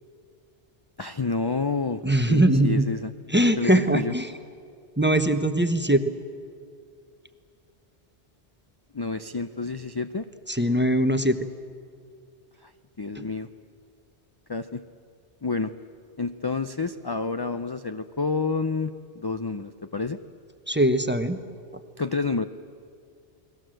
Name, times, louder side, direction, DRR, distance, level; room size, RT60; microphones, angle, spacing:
voice 1, 1.0-2.0 2.3-3.1 3.6-4.1 8.9-10.2 12.6-12.7 13.0-13.5 14.5-14.8 15.4-15.7 16.2-20.2 22.0-22.4, left 4 dB, 30° left, 9 dB, 0.5 m, -29 dB
voice 2, 2.0-2.9 3.3-4.3 5.0-6.0 10.5-11.5 13.1-13.2 20.7-21.4, right 1 dB, 10° right, 9 dB, 0.9 m, -21 dB
29.5 x 21.0 x 7.7 m, 2.2 s
omnidirectional pair, 1.1 m